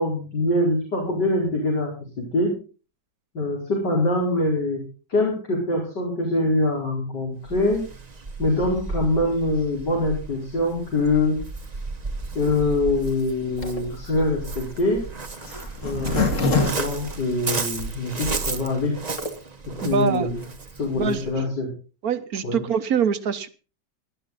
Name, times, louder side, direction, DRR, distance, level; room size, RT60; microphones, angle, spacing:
voice 1, 0.0-2.5 3.3-4.8 5.1-7.8 8.4-11.4 12.4-15.0 15.8-16.5 16.8-19.0 19.8-20.4 20.7-21.7 22.4-22.6, left 2 dB, 80° left, -1 dB, 5.4 m, -24 dB
Waves surf, 7.4-21.3, right 3 dB, 25° right, 1.1 m, -34 dB
Zipper (clothing), 13.6-17.9 18.4-18.5 18.6-18.7 19.0-19.3, left 3 dB, 45° left, 2.5 m, -26 dB
voice 2, 19.8-20.3 20.9-21.5 22.0-23.5, right 6 dB, 60° right, 13 dB, 1.5 m, -24 dB
18.0 x 11.5 x 4.1 m, 0.36 s
omnidirectional pair, 1.9 m